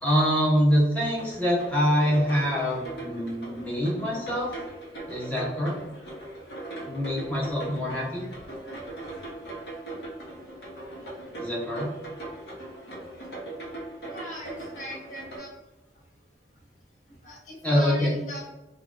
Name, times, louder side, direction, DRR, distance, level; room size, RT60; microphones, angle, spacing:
voice 1, 0.0-4.5 5.1-5.8 6.8-8.2 11.4-11.9 17.6-18.1, equal, 10° left, -6 dB, 0.7 m, -25 dB
sound 1, 1.0-15.4, right 2 dB, 65° left, 0.8 m, -40 dB
voice 2, 14.1-15.5 17.2-18.4, left 1 dB, 45° left, -4 dB, 1.1 m, -39 dB
3.1 x 2.3 x 2.4 m, 1.0 s
head